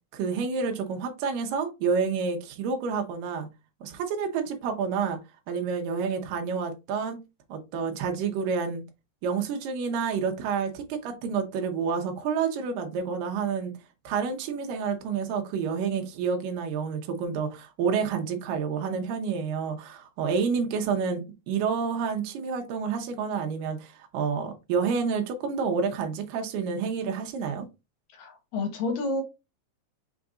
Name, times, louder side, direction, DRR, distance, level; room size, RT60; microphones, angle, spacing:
voice 1, 0.1-3.5 3.8-5.2 5.5-7.2 7.5-8.8 9.2-13.7 14.0-27.7, right 5 dB, 75° right, 2.5 m, -29 dB
voice 2, 28.2-29.2, left 2 dB, 75° left, 2.5 m, -29 dB
5.8 x 2.5 x 3.6 m
omnidirectional pair, 4.0 m